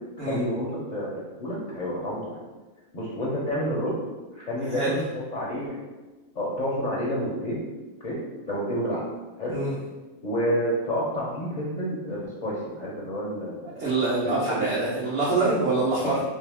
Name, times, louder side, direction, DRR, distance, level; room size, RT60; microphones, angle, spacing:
voice 1, 0.2-2.4 2.9-4.0 4.3-5.0 5.3-5.8 6.3-7.6 8.0-8.2 8.5-9.0 9.4-9.6 10.2-13.8 14.2-14.7 15.2-15.5 16.0-16.2, equal, 55° left, -5 dB, 0.5 m, -29 dB
voice 2, 4.7-5.0 9.5-9.7 13.7-16.2, right 3 dB, 60° right, -8 dB, 0.9 m, -25 dB
2.7 x 2.7 x 3.4 m, 1.2 s
omnidirectional pair, 1.4 m